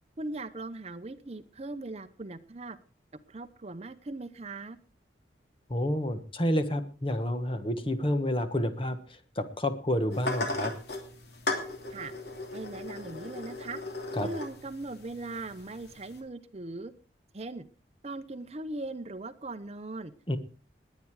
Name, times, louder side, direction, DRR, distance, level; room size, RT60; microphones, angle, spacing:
voice 1, 0.2-2.8 3.3-4.8 11.9-12.1 12.5-13.8 14.1-16.9 17.3-17.7 18.0-20.1, right 2 dB, 35° right, 12 dB, 0.7 m, -39 dB
voice 2, 5.7-10.7 14.2-14.3 20.3-20.4, left 1 dB, 30° left, 9 dB, 1.3 m, -29 dB
sound 1, 10.1-16.2, left 2 dB, 65° left, 2.8 m, -37 dB
20.0 x 9.3 x 4.8 m, 0.38 s
head